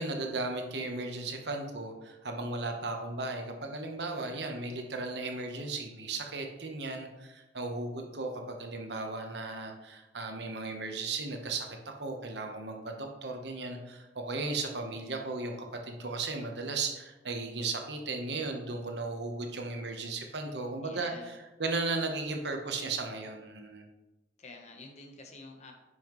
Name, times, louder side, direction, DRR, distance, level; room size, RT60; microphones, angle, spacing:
voice 1, 0.0-23.9, right 3 dB, 70° right, 3 dB, 1.0 m, -36 dB
voice 2, 20.8-21.3 24.4-25.7, left 3 dB, 40° left, 3 dB, 1.1 m, -49 dB
9.9 x 5.6 x 3.1 m, 1.1 s
head